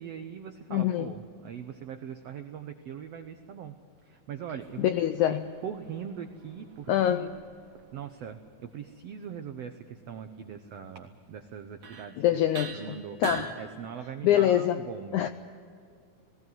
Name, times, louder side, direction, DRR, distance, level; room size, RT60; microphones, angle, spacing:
voice 1, 0.0-3.7 4.0-4.9 5.2-7.3 7.9-12.2 12.7-13.2 13.6-15.2, right 8 dB, 85° right, 7 dB, 1.4 m, -41 dB
voice 2, 0.7-1.1 4.8-5.5 6.9-7.3 12.2-13.5 14.2-14.8 15.1-15.3, left 11 dB, 85° left, 10 dB, 1.7 m, -25 dB
sound 1, 4.6-8.1 11.1-11.2 11.8-12.2 12.5-13.5, right 5 dB, 55° right, 2.9 m, -42 dB
19.0 x 18.0 x 9.4 m, 2.3 s
omnidirectional pair, 4.2 m